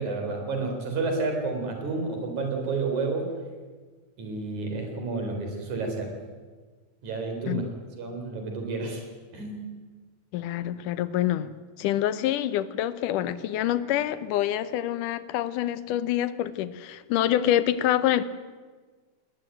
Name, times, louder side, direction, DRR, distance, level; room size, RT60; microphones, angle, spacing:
voice 1, 0.0-3.3 4.2-6.1 7.0-7.7 8.0-9.0 9.3-9.6, right 3 dB, 70° right, 4 dB, 5.2 m, -30 dB
voice 2, 10.3-18.2, left 12 dB, 90° left, 14 dB, 2.4 m, -26 dB
20.0 x 18.5 x 9.2 m, 1.4 s
omnidirectional pair, 3.6 m